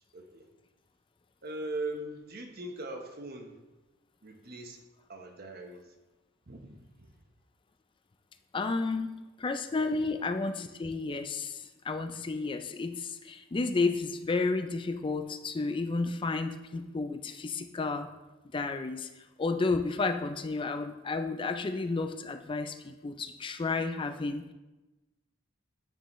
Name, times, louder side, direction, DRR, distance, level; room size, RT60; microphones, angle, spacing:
voice 1, 0.1-0.5 1.4-3.5 4.2-4.8 5.1-5.9 6.5-7.1, right 2 dB, 50° right, 3 dB, 1.0 m, -40 dB
voice 2, 8.5-9.1 9.4-18.1 18.5-24.4, left 3 dB, 25° left, 7 dB, 0.4 m, -32 dB
9.2 x 6.8 x 3.1 m, 1.1 s
head